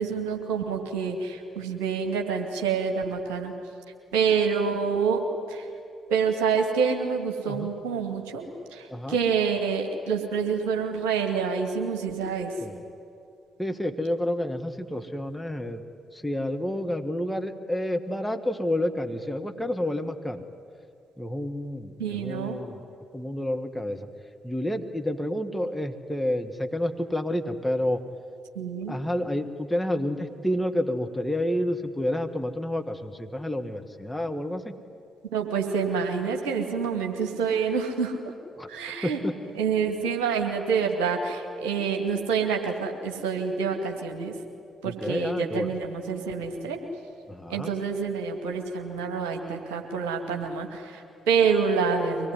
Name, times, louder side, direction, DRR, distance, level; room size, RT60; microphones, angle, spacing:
voice 1, 0.0-3.5 4.1-5.2 5.5-5.7 6.1-12.5 22.0-22.6 28.6-29.0 35.3-38.2 38.7-39.2 39.6-44.3 44.8-46.8 47.5-52.3, right 6 dB, 65° right, 2 dB, 2.4 m, -27 dB
voice 2, 13.6-15.8 16.1-20.4 21.2-22.8 23.1-24.1 24.4-28.0 28.9-34.7 38.6-38.7 39.0-39.3 44.8-45.7 47.3-47.7, left 1 dB, 5° left, 4 dB, 1.7 m, -29 dB
24.0 x 19.5 x 9.8 m, 2.5 s
figure-of-eight pair, 40°, 0 cm